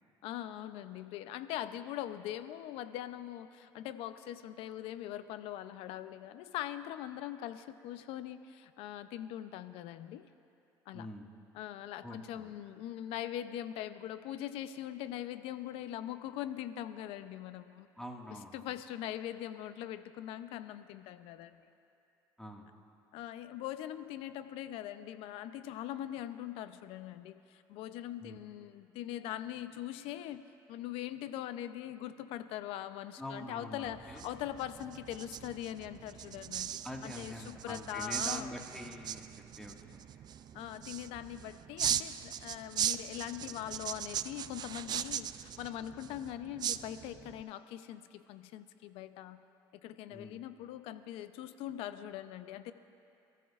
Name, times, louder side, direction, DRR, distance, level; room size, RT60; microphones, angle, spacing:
voice 1, 0.2-10.3 10.9-11.1 11.5-17.9 18.3-21.6 23.1-30.4 30.7-38.5 40.5-49.4 49.8-52.7, left 12 dB, 80° left, 11 dB, 0.6 m, -42 dB
voice 2, 10.9-11.3 12.0-12.5 18.0-18.7 22.4-22.7 28.2-28.4 33.2-34.2 36.8-39.3 39.6-40.0 50.1-50.4, left 1 dB, 5° left, 0 dB, 1.9 m, -45 dB
sound 1, 33.8-47.4, right 9 dB, 45° right, 0.4 m, -39 dB
27.5 x 14.5 x 2.5 m, 2.7 s
cardioid pair, 95°, 10 cm